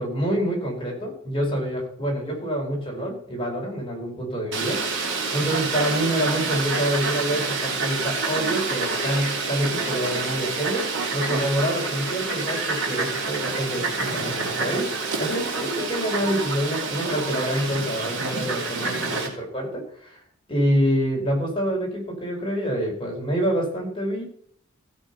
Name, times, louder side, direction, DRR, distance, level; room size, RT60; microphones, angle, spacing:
voice 1, 0.0-10.8 11.1-14.9 15.2-19.2 19.5-20.2 20.5-24.2, equal, 25° left, -1 dB, 4.9 m, -26 dB
Fowl, 4.5-19.3, right 3 dB, 60° right, 3.6 m, -27 dB
16.0 x 7.0 x 5.5 m, 0.62 s
head